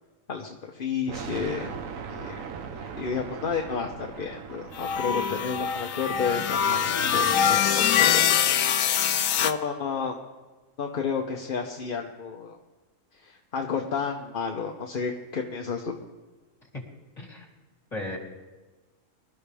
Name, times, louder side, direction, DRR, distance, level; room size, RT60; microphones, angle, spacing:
voice 1, 0.3-1.7 2.1-2.4 2.8-10.2 10.8-12.6 13.2-16.0, left 6 dB, 45° left, 2 dB, 0.9 m, -32 dB
sound 1, 1.1-6.0, right 6 dB, 70° right, 1.2 m, -39 dB
sound 2, 4.8-9.5, left 8 dB, 80° left, 1.1 m, -23 dB
voice 2, 17.2-17.5 17.9-18.2, left 2 dB, 30° left, -2 dB, 3.2 m, -35 dB
24.0 x 13.0 x 3.5 m, 1.3 s
omnidirectional pair, 1.4 m